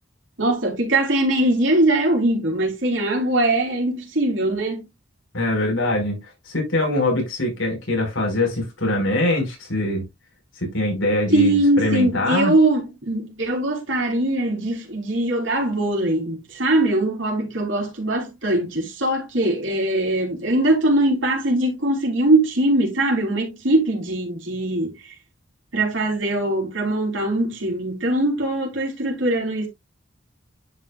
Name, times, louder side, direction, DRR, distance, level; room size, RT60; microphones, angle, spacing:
voice 1, 0.4-4.8 11.3-25.1 25.7-29.7, right 1 dB, 70° right, 3.7 m, -21 dB
voice 2, 5.3-10.0 10.6-12.5, left 1 dB, 80° left, 5.1 m, -23 dB
10.5 x 6.0 x 2.4 m
head